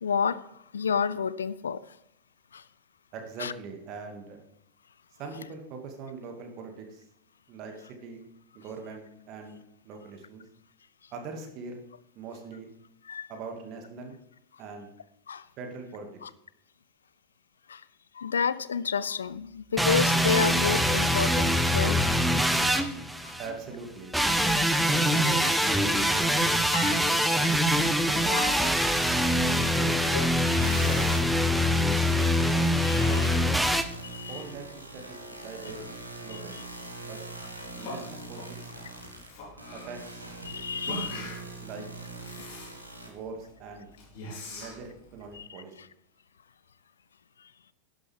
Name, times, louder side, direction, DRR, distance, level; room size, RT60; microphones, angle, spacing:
voice 1, 0.0-0.5 0.7-1.8 2.5-2.6 3.4-3.5 13.1-13.3 15.3-15.4 16.2-16.3 17.7-17.8 18.1-22.0 23.2-23.3 24.5-24.7 26.7-27.0 29.5-29.7 30.1-30.8 32.2-32.3 32.8-33.2 34.0-34.4 36.3-36.4 40.4-41.2 45.3-45.5, left 6 dB, 70° left, 0.5 m, -30 dB
voice 2, 3.1-4.4 5.2-7.1 7.5-8.3 8.5-10.5 11.1-11.8 12.1-12.7 13.3-14.2 14.6-14.9 15.6-16.1 23.4-24.2 24.8-26.7 27.0-27.6 28.0-28.4 29.6-30.0 30.6-31.2 31.9-32.4 33.0-33.3 34.3-35.8 36.2-36.6 37.0-37.2 37.7-38.4 39.7-40.2 40.7-41.3 41.6-41.9 43.1-43.9 44.5-45.7, right 4 dB, 40° right, 2.5 m, -41 dB
sound 1, 19.8-23.5 24.1-33.8, equal, ahead, 0.9 m, -24 dB
Yell, 28.3-45.4, left 2 dB, 50° left, 4.4 m, -45 dB
sound 2, 30.6-43.1, right 2 dB, 85° right, 2.1 m, -42 dB
11.5 x 11.5 x 3.7 m
figure-of-eight pair, 90°, 0 cm